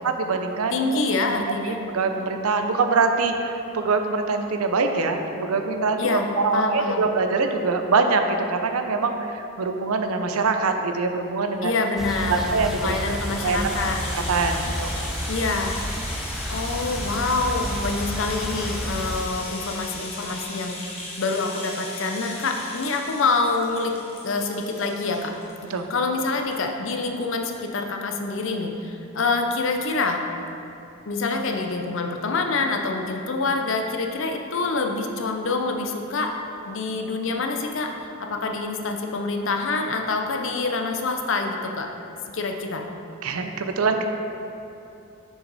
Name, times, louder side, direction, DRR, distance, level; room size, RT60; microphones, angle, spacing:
voice 1, 0.0-0.8 1.3-11.7 12.3-12.9 13.4-13.7 14.1-15.0 25.7-25.9 43.2-44.1, right 4 dB, 85° right, 6 dB, 0.6 m, -24 dB
voice 2, 0.7-1.8 6.0-7.1 11.6-12.5 12.8-14.0 15.3-15.8 16.5-20.8 21.2-24.0 24.2-25.3 25.9-30.2 31.1-36.3 36.6-37.9 38.2-41.9 42.3-42.9, left 3 dB, 60° left, 3 dB, 0.6 m, -26 dB
Rattle (instrument), 11.8-25.8 26.1-26.2 26.5-26.6, left 2 dB, 30° left, 1.0 m, -37 dB
sound 1, 12.0-19.2, equal, ahead, 0.3 m, -31 dB
6.3 x 6.0 x 4.0 m, 2.9 s
head